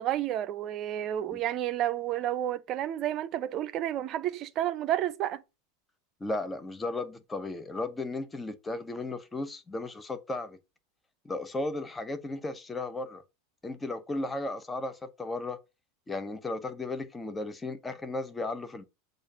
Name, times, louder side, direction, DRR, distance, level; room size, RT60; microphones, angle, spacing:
voice 1, 0.0-5.4, right 12 dB, 40° right, 0.5 m, -31 dB
voice 2, 6.2-10.6 11.2-13.2 13.6-15.6 16.1-18.8, left 2 dB, 15° left, 0.7 m, -35 dB
6.5 x 2.6 x 5.5 m
figure-of-eight pair, 85°, 0 cm